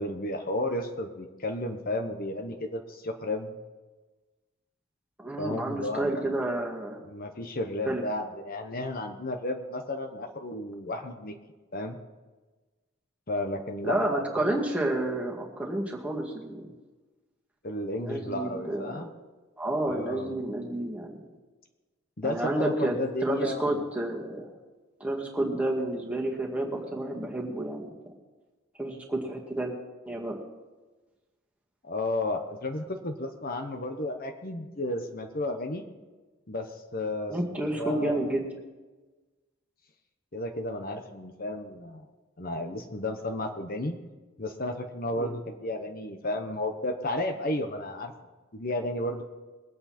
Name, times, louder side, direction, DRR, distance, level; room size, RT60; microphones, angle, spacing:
voice 1, 0.0-3.6 5.4-6.3 7.0-11.4 11.7-12.0 13.3-14.5 17.6-19.1 19.9-20.4 22.2-23.8 31.8-35.8 36.5-38.3 40.3-42.0 42.4-44.0 44.4-48.1 48.5-49.2, left 1 dB, 45° left, 5 dB, 1.1 m, -33 dB
voice 2, 5.2-7.0 7.9-8.0 13.8-16.7 18.0-19.1 19.6-21.2 22.2-23.0 23.2-24.6 25.0-27.9 28.8-29.7 30.1-30.4 37.3-38.5 45.2-45.3, right 1 dB, 5° right, -2 dB, 2.1 m, -30 dB
22.0 x 8.7 x 4.4 m, 1.2 s
head